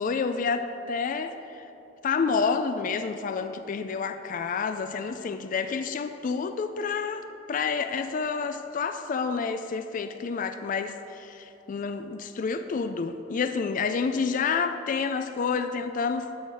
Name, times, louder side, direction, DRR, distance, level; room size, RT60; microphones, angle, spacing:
voice 1, 0.0-1.7 2.0-16.3, left 5 dB, 45° left, 9 dB, 0.3 m, -29 dB
12.5 x 4.9 x 5.6 m, 2.9 s
head